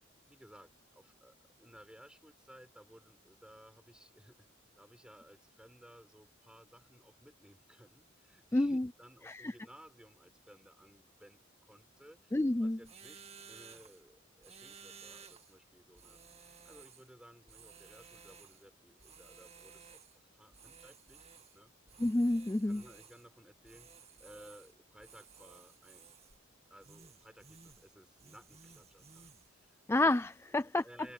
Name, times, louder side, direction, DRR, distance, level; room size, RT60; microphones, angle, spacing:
voice 1, 0.2-4.5 4.8-12.3 12.6-20.0 20.3-21.7 22.7-26.1 26.7-29.8 30.5-31.1, equal, 5° right, 5.6 m, -58 dB
voice 2, 8.5-8.9 9.3-9.5 12.3-12.8 22.0-22.8 29.9-30.8, left 2 dB, 10° left, 0.4 m, -29 dB
sound 1, 12.8-14.0 14.4-15.6 15.9-17.1 17.5-18.6 19.0-20.2 20.5-21.6 21.9-23.3 23.6-24.7 25.0-26.4 26.8-27.9 28.2-29.5, right 6 dB, 30° right, 2.0 m, -56 dB
head